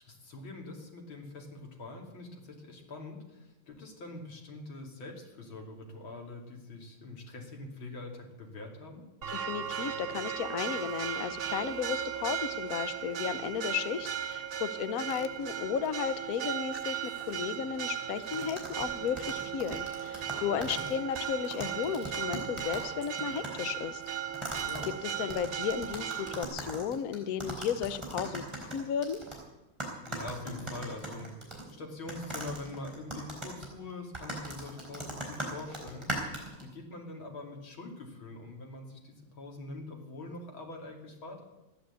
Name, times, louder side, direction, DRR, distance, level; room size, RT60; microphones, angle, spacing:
voice 1, 0.0-9.1 20.5-20.9 24.6-24.9 30.1-41.4, left 2 dB, 85° left, 1 dB, 3.6 m, -44 dB
Church bell, 9.2-26.4, right 9 dB, 55° right, 0.6 m, -37 dB
voice 2, 9.3-24.0 24.5-24.7 25.0-29.2, left 8 dB, 65° left, 13 dB, 1.0 m, -34 dB
sound 1, 18.3-22.9 23.2-23.6 24.3-29.4 29.8-31.7 32.1-36.6, right 1 dB, 15° right, 3.9 m, -40 dB
14.0 x 11.0 x 8.3 m, 0.99 s
omnidirectional pair, 2.2 m